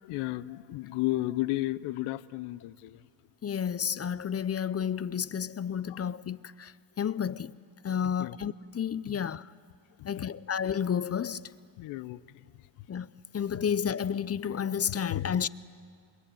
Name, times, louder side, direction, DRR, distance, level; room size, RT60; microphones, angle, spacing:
voice 1, 0.0-3.0 5.9-6.0 8.0-8.4 10.0-10.2 11.8-12.4 15.1-15.3, left 17 dB, 85° left, 0.8 m, -33 dB
voice 2, 3.4-6.7 7.0-7.5 7.8-9.4 10.0-11.5 12.9-13.1 13.3-15.5, left 8 dB, 30° left, 0.6 m, -31 dB
28.5 x 23.0 x 9.2 m
cardioid pair, 85°, 49 cm